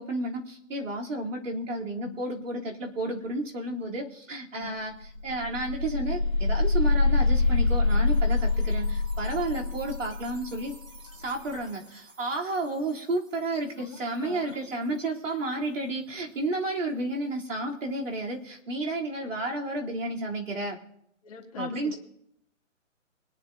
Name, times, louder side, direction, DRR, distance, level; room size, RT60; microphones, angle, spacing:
voice 1, 0.0-10.7 11.1-20.8 21.6-22.0, right 2 dB, 70° right, -1 dB, 3.4 m, -32 dB
sound 1, 4.6-4.7 5.0-11.8, left 3 dB, 85° right, 2.5 m, -26 dB
voice 2, 13.8-14.5 21.2-22.0, left 6 dB, 25° left, -2 dB, 2.4 m, -42 dB
25.0 x 10.5 x 2.7 m, 0.74 s
hypercardioid pair, 175°, 39 cm